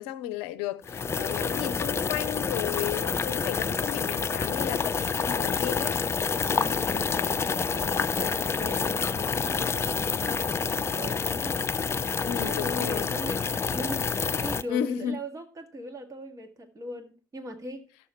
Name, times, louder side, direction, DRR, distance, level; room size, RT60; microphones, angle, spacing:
voice 1, 0.0-6.0 12.3-13.1 14.7-15.2, left 11 dB, 65° left, 0.6 m, -33 dB
sound 1, 0.8-14.6, left 5 dB, 25° left, 0.5 m, -28 dB
voice 2, 6.4-11.6 12.1-17.8, equal, 30° right, 1.8 m, -40 dB
13.0 x 6.4 x 4.3 m
hypercardioid pair, 70°, 11 cm